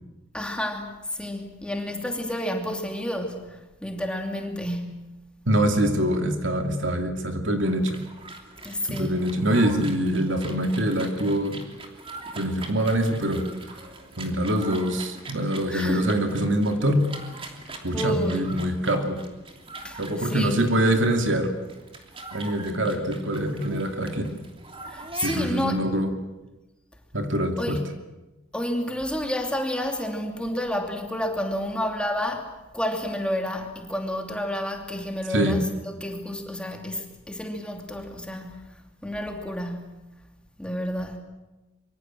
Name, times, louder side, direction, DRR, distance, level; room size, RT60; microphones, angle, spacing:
voice 1, 0.3-5.2 8.6-9.2 15.7-16.1 17.9-18.6 19.8-20.6 24.8-25.8 27.6-27.8 28.5-38.7 39.0-40.1 40.6-41.2, equal, 5° left, 3 dB, 2.8 m, -30 dB
voice 2, 5.5-8.0 8.9-11.6 12.4-13.4 14.2-17.0 17.8-19.2 20.0-21.5 22.3-24.3 25.2-26.1 27.1-27.8 35.3-35.6, right 1 dB, 65° right, 5 dB, 2.7 m, -24 dB
sound 1, 7.6-25.7, right 2 dB, 25° right, 3.0 m, -42 dB
25.0 x 24.0 x 7.7 m, 1.1 s
head